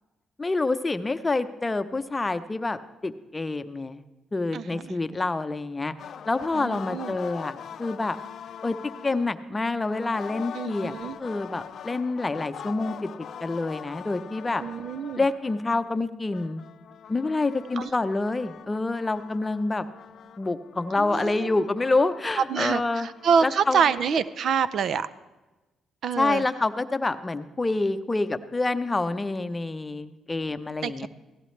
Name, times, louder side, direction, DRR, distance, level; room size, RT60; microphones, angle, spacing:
voice 1, 0.4-4.0 4.3-5.9 6.3-7.5 7.8-8.2 8.6-10.9 11.2-13.1 13.4-14.6 15.2-16.6 17.1-19.9 20.4-23.1 23.4-23.8 26.2-31.1, left 3 dB, 20° left, 11 dB, 0.7 m, -27 dB
voice 2, 4.5-5.0 6.5-7.2 10.5-11.2 14.6-15.3 17.8-17.9 21.0-21.5 22.4-25.1 26.0-26.4 30.8-31.1, right 6 dB, 60° right, 16 dB, 0.5 m, -26 dB
sound 1, 6.0-9.4 9.9-16.0 16.3-24.4, left 8 dB, 60° left, 0.5 m, -43 dB
17.0 x 15.0 x 3.3 m, 1.1 s
cardioid pair, 90°, 0 cm